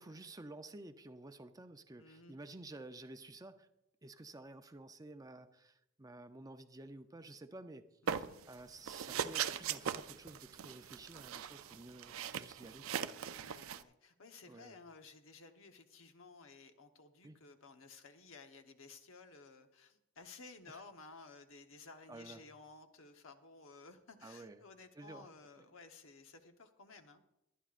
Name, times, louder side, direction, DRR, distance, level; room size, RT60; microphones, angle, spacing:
voice 1, 0.0-3.7 4.0-7.9 8.5-13.0 14.5-14.8 17.2-17.4 20.7-20.8 22.1-22.4 24.2-24.6 25.0-25.3, right 2 dB, 20° right, 0.6 m, -52 dB
voice 2, 2.0-2.4 8.0-8.4 13.2-27.2, left 4 dB, 75° left, 1.1 m, -56 dB
sound 1, 8.1-8.5 8.9-13.8, right 8 dB, 90° right, 0.5 m, -40 dB
22.0 x 10.0 x 2.5 m
head